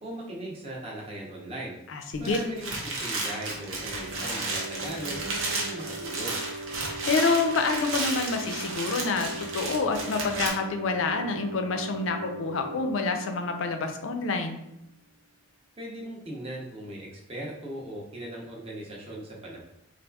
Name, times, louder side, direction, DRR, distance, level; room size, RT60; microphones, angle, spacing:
voice 1, 0.0-1.8 2.2-6.4 15.8-19.6, right 1 dB, 30° right, -3 dB, 0.7 m, -39 dB
voice 2, 1.9-2.4 7.0-14.6, left 4 dB, 75° left, 5 dB, 0.4 m, -27 dB
sound 1, 2.1-10.5, right 2 dB, 85° right, 0.8 m, -33 dB
sound 2, 3.3-14.7, right 2 dB, 65° right, 0.4 m, -40 dB
4.1 x 2.5 x 2.3 m, 0.82 s
head